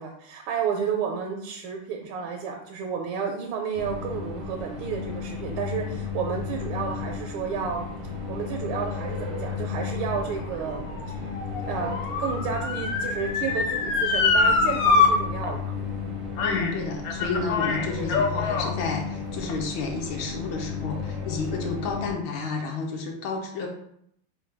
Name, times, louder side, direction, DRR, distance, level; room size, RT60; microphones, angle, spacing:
voice 1, 0.0-7.9 8.3-11.3 11.7-15.8, right 6 dB, 85° right, 2 dB, 1.4 m, -31 dB
sound 1, 3.7-22.1, left 5 dB, 65° right, 0.5 m, -34 dB
Motor vehicle (road) / Siren, 9.9-15.1 15.4-15.5 16.4-16.7 17.0-18.7 19.4-19.5, left 4 dB, 90° left, 0.7 m, -24 dB
voice 2, 16.4-23.7, left 4 dB, 70° left, 1 dB, 1.3 m, -31 dB
4.5 x 2.2 x 4.5 m, 0.72 s
omnidirectional pair, 2.3 m